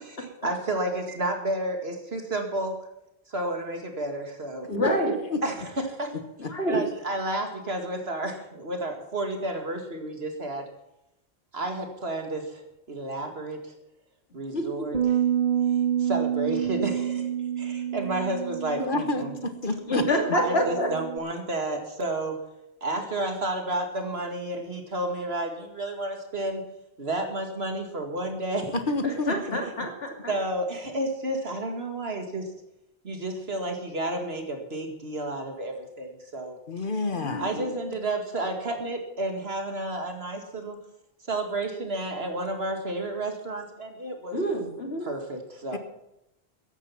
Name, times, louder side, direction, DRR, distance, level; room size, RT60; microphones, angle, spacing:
voice 1, 0.0-2.8 3.3-4.7 5.4-6.1 6.7-10.6 11.5-12.6 12.9-13.7 14.3-15.0 16.0-17.3 17.6-19.3 20.3-22.4 22.8-26.6 27.0-28.8 30.3-32.5 33.0-36.6 37.4-40.8 41.3-44.4 45.0-45.8, right 1 dB, 75° right, 4 dB, 2.4 m, -31 dB
voice 2, 4.7-5.1 6.5-6.9 14.5-15.0 19.9-20.9 29.0-30.3 37.1-37.7 44.3-45.1, equal, 75° left, 3 dB, 3.0 m, -27 dB
sound 1, 14.9-21.2, right 9 dB, 45° right, 1.0 m, -28 dB
voice 3, 18.8-20.0 28.7-29.6 36.7-37.4 45.7-45.8, left 2 dB, 55° left, 8 dB, 1.5 m, -29 dB
15.5 x 11.0 x 5.9 m, 0.85 s
omnidirectional pair, 1.1 m